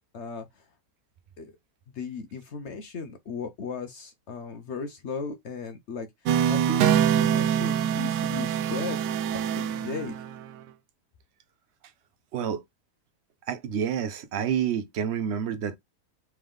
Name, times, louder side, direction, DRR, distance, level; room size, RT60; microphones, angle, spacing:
voice 1, 0.1-0.5 1.4-1.5 1.9-6.1 6.4-10.1, left 5 dB, 60° left, 0.8 m, -36 dB
sound 1, 6.3-10.5, right 9 dB, 80° right, 1.2 m, -25 dB
voice 2, 13.5-15.8, right 8 dB, 60° right, 0.7 m, -28 dB
3.5 x 3.3 x 3.6 m
omnidirectional pair, 1.8 m